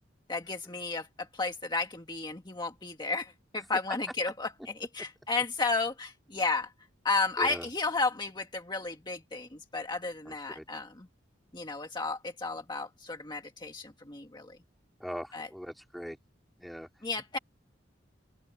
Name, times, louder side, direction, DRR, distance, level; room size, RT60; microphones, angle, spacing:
voice 1, 0.3-1.1 1.3-4.5 4.9-6.7 7.0-11.1 11.5-14.6 15.3-15.5 17.0-17.4, left 3 dB, 25° left, 1.7 m, -33 dB
voice 2, 7.4-7.7 10.2-10.6 15.0-16.2 16.6-16.9, equal, ahead, 3.1 m, -40 dB
open air
head